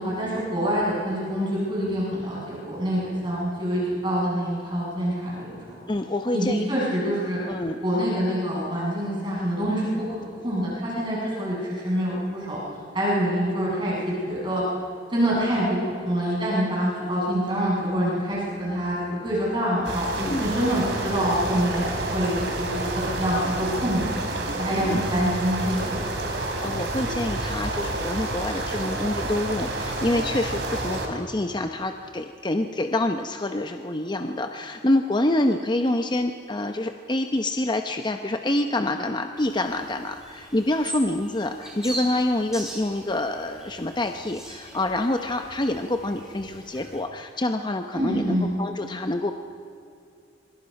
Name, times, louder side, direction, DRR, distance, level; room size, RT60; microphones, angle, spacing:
voice 1, 0.0-5.8 6.3-7.4 7.8-12.6 12.9-14.6 15.1-20.1 20.4-26.1 47.9-48.6, equal, 25° right, -6 dB, 7.2 m, -26 dB
voice 2, 5.9-6.6 7.5-7.8 20.2-20.5 24.7-25.0 26.6-49.3, left 1 dB, 25° left, 6 dB, 0.8 m, -26 dB
sound 1, 19.8-31.1, right 2 dB, 80° right, 3.7 m, -29 dB
sound 2, 39.4-47.0, right 1 dB, 5° right, 5.9 m, -40 dB
26.0 x 23.5 x 5.4 m, 2.5 s
head